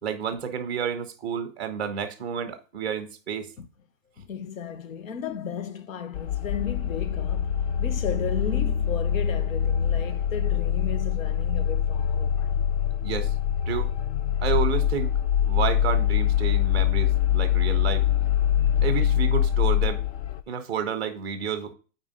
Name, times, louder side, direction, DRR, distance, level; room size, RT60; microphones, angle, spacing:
voice 1, 0.0-3.5 13.0-13.3 13.7-13.9 14.4-15.2 15.5-18.1 18.8-20.0 20.5-21.7, right 7 dB, ahead, 0.5 m, -30 dB
voice 2, 4.2-12.6 18.8-18.9, left 7 dB, 80° left, 1.2 m, -35 dB
sound 1, 6.1-20.4, left 9 dB, 55° left, 0.7 m, -24 dB
8.8 x 4.7 x 5.1 m
hypercardioid pair, 165°, 40 cm